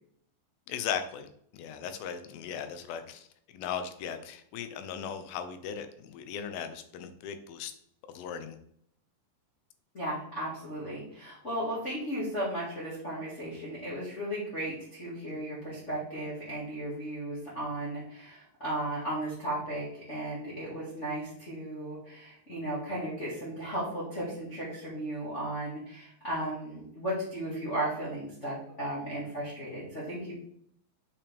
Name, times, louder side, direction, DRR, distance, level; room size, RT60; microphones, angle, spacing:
voice 1, 0.7-1.3 1.5-3.3 3.5-7.7 8.1-8.6, left 8 dB, 80° left, 9 dB, 2.5 m, -37 dB
voice 2, 9.9-30.3, right 1 dB, 25° left, -8 dB, 1.7 m, -35 dB
6.7 x 5.7 x 3.4 m, 0.68 s
omnidirectional pair, 4.3 m